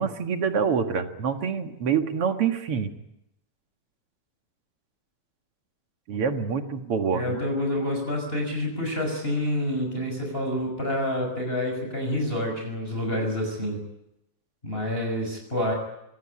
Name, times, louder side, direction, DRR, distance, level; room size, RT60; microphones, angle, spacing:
voice 1, 0.0-2.9 6.1-7.4, right 6 dB, 50° right, 6 dB, 2.4 m, -26 dB
voice 2, 7.1-13.8 14.6-15.7, left 1 dB, 15° left, 2 dB, 6.2 m, -28 dB
25.5 x 18.5 x 9.9 m, 0.85 s
omnidirectional pair, 3.6 m